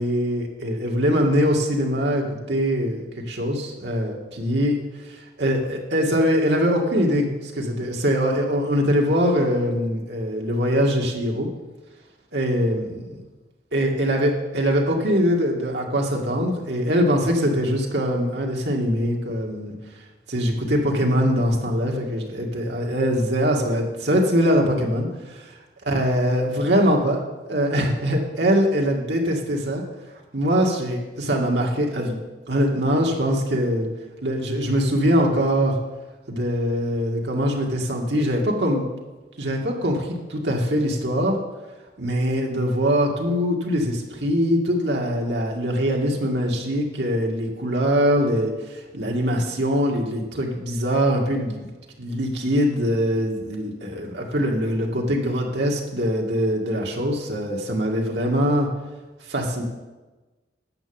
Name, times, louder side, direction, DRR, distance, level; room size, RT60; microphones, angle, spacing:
voice 1, 0.0-4.8 5.4-11.5 12.3-13.0 13.7-19.7 20.3-25.5 25.8-27.2 27.5-29.8 30.3-32.2 32.5-33.9 34.2-35.8 36.3-38.8 39.4-41.4 42.0-51.7 52.0-58.7 59.3-59.6, equal, 80° right, 0 dB, 2.1 m, -22 dB
10.5 x 7.1 x 7.2 m, 1.2 s
head